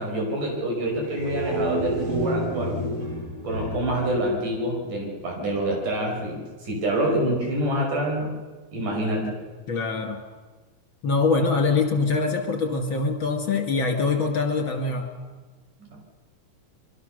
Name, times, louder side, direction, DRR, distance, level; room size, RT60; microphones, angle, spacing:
voice 1, 0.0-2.8 3.4-8.3 8.7-9.4 15.8-16.0, right 1 dB, 75° right, 0 dB, 7.1 m, -26 dB
sound 1, 0.9-5.1, right 1 dB, 40° right, 5.8 m, -31 dB
voice 2, 9.7-10.2 11.0-15.1, left 4 dB, 40° left, 3 dB, 2.7 m, -24 dB
26.0 x 23.0 x 6.7 m, 1.3 s
omnidirectional pair, 3.7 m